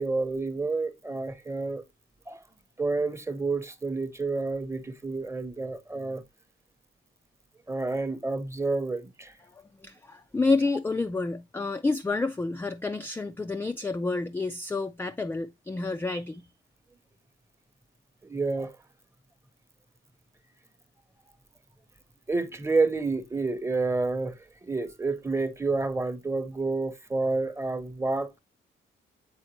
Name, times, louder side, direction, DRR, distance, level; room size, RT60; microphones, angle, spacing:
voice 1, 0.0-1.8 2.3-2.4 2.8-6.2 7.7-9.3 18.2-18.7 22.3-28.4, right 3 dB, 15° right, 0.8 m, -29 dB
voice 2, 9.5-16.4, left 3 dB, 10° left, 0.3 m, -29 dB
7.7 x 4.3 x 2.9 m
cardioid pair, 125°, 21 cm